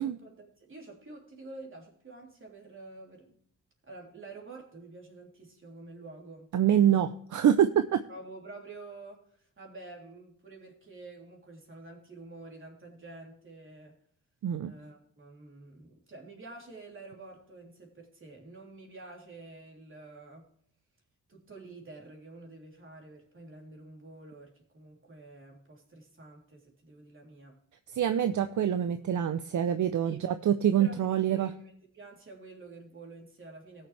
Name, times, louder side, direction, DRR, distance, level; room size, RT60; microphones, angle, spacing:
voice 1, 0.0-3.4 3.9-7.0 8.1-14.0 14.6-20.5 21.3-27.6 30.0-30.2 30.8-33.9, right 3 dB, 40° right, 0 dB, 3.4 m, -49 dB
voice 2, 6.5-8.0 14.4-14.7 27.9-31.5, right 10 dB, 70° right, 9 dB, 0.6 m, -25 dB
19.0 x 6.8 x 3.3 m, 0.63 s
cardioid pair, 95°, 31 cm